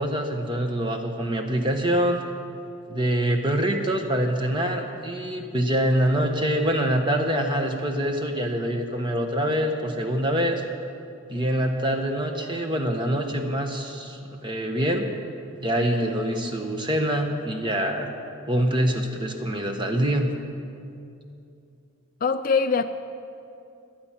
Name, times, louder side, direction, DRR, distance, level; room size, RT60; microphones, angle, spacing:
voice 1, 0.0-2.2 2.9-10.6 11.3-15.1 15.6-18.1 18.5-20.3, right 1 dB, 20° right, 4 dB, 1.1 m, -25 dB
voice 2, 22.2-22.8, left 5 dB, 40° left, 10 dB, 0.4 m, -22 dB
25.0 x 8.8 x 5.9 m, 2.6 s
head